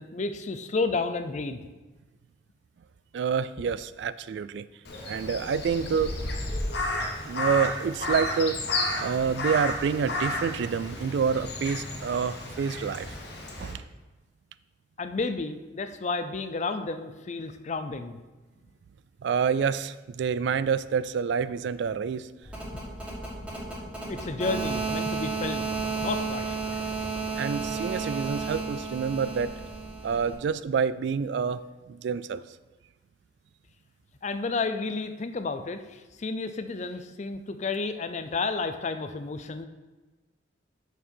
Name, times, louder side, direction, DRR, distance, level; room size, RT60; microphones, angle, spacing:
voice 1, 0.0-1.7 15.0-18.2 22.7-22.8 24.1-26.6 34.2-39.6, left 3 dB, 40° left, 9 dB, 0.5 m, -31 dB
voice 2, 3.1-4.7 5.1-6.1 7.3-8.6 9.0-13.1 13.6-13.8 19.2-22.3 27.4-29.5 30.0-31.6 31.9-32.4, right 6 dB, 70° right, 15 dB, 0.3 m, -27 dB
Crow, 4.8-13.7, left 2 dB, 65° left, 1.2 m, -32 dB
sound 1, 22.4-30.3, right 4 dB, 5° right, 2.5 m, -32 dB
6.9 x 6.1 x 4.4 m, 1.2 s
head